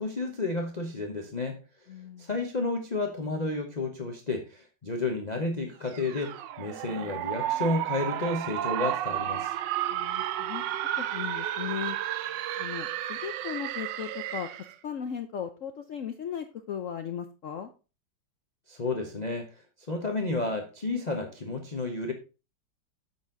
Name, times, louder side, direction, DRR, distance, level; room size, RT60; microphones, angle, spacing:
voice 1, 0.0-1.6 2.2-9.5 18.7-19.5 19.9-22.1, left 2 dB, 30° left, 2 dB, 0.8 m, -31 dB
voice 2, 1.9-2.3 9.9-10.6 11.0-12.0 12.6-14.5 14.8-17.7, left 8 dB, 75° left, 7 dB, 0.7 m, -37 dB
sound 1, 5.9-14.7, right 12 dB, 75° right, 1.2 m, -32 dB
7.4 x 6.2 x 3.9 m, 0.32 s
omnidirectional pair, 2.1 m